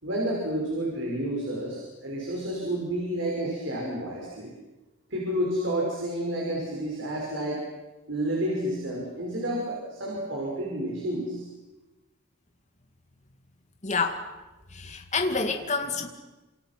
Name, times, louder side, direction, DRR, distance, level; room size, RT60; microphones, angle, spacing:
voice 1, 0.0-4.5 5.1-7.6 8.1-11.5, right 1 dB, 60° right, -2 dB, 5.9 m, -30 dB
voice 2, 13.8-14.2 14.7-16.1, left 4 dB, 35° left, 5 dB, 2.4 m, -28 dB
28.5 x 27.0 x 6.1 m, 1.1 s
head